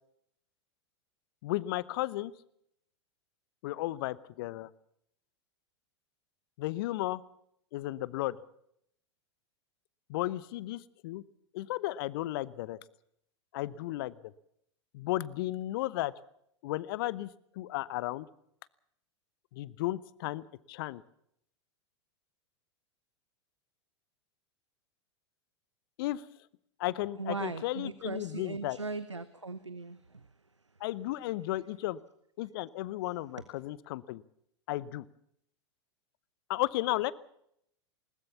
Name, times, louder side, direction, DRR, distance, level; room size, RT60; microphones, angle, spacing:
voice 1, 1.4-2.3 3.6-4.7 6.6-7.2 7.7-8.4 10.1-11.2 11.5-12.8 13.5-14.3 14.9-16.1 16.6-17.3 17.6-18.3 19.5-21.0 26.0-26.2 26.8-28.8 30.8-32.0 32.4-34.2 34.7-35.0 36.5-37.1, left 16 dB, 55° left, 20 dB, 0.9 m, -34 dB
voice 2, 27.2-30.3, right 3 dB, 90° right, 15 dB, 0.9 m, -38 dB
20.5 x 19.5 x 7.1 m, 0.73 s
figure-of-eight pair, 90°, 15 cm